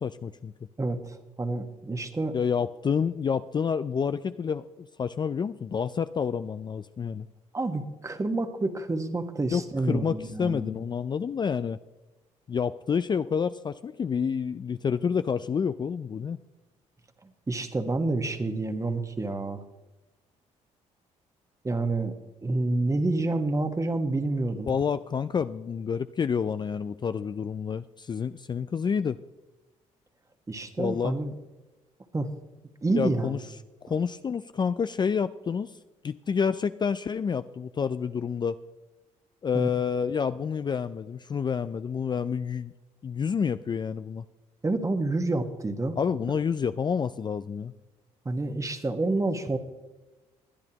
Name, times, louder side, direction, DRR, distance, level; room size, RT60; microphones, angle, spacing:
voice 1, 0.0-0.5 2.3-7.3 9.5-11.8 12.5-16.4 24.7-29.2 30.8-31.2 32.9-33.4 33.8-35.7 36.0-38.6 39.4-42.7 43.0-44.2 46.0-47.7, left 6 dB, 35° left, 12 dB, 0.4 m, -28 dB
voice 2, 0.8-2.3 7.5-10.8 17.2-19.6 21.6-22.1 22.4-24.8 30.5-31.3 32.1-32.3 32.8-33.4 39.5-39.7 44.6-46.0 48.2-49.6, right 2 dB, 25° right, 8 dB, 1.4 m, -28 dB
20.5 x 10.5 x 2.9 m, 1.1 s
supercardioid pair, 70°, 14 cm